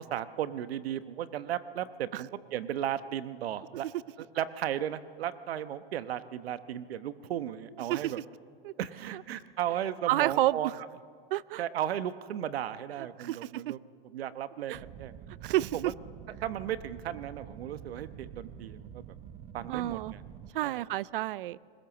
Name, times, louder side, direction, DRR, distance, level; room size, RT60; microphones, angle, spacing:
voice 1, 0.0-3.9 4.3-8.2 8.8-10.7 11.6-13.8 14.1-15.1 15.7-15.9 16.4-19.1 19.5-20.2 20.6-20.8, right 11 dB, 80° right, 13 dB, 1.1 m, -35 dB
voice 2, 10.1-10.8 11.3-11.6 13.0-13.7 14.7-14.8 15.4-15.9 19.7-20.2 20.5-21.6, right 15 dB, 60° right, 22 dB, 0.5 m, -30 dB
sound 1, 14.7-20.5, right 9 dB, 20° right, 0.6 m, -47 dB
20.5 x 18.5 x 7.1 m, 2.1 s
supercardioid pair, 160°, 30 cm